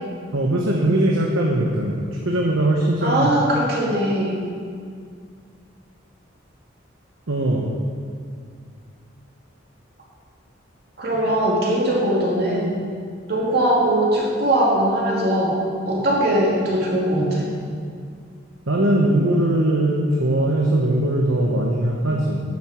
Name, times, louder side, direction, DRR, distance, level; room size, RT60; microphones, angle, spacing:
voice 1, 0.3-1.9 2.2-3.3 7.3-7.7 18.7-22.4, right 1 dB, 80° right, -1 dB, 1.1 m, -20 dB
voice 2, 3.0-4.3 11.0-12.7 13.3-15.5 15.9-17.5, right 1 dB, 50° right, -4 dB, 2.5 m, -20 dB
9.6 x 7.5 x 6.2 m, 2.1 s
head